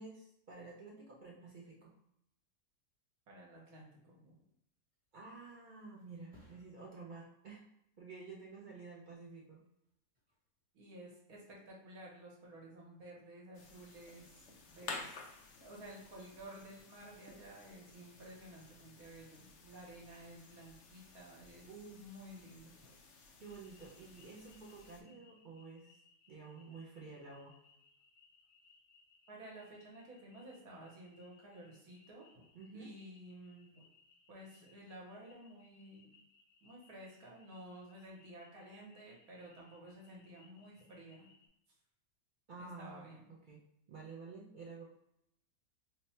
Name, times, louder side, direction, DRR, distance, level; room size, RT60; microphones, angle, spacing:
voice 1, 0.0-2.0 5.1-7.7 8.0-9.6 21.7-22.0 23.4-26.0 26.3-27.6 32.5-32.9 42.5-43.6 43.9-44.8, right 4 dB, 55° right, -3 dB, 0.5 m, -51 dB
voice 2, 3.3-4.4 10.7-15.3 15.6-23.0 29.3-32.4 32.7-33.8 34.3-36.1 36.6-41.3 42.6-43.3, right 1 dB, 80° right, -3 dB, 1.5 m, -53 dB
Thump thud, 4.7-12.2 12.6-13.0, left 2 dB, 5° right, 0.8 m, -71 dB
sound 1, 13.5-25.0, left 4 dB, 65° left, 0.8 m, -53 dB
sound 2, 23.4-41.5, left 4 dB, 80° left, 1.1 m, -68 dB
3.1 x 2.1 x 4.2 m, 0.77 s
omnidirectional pair, 1.5 m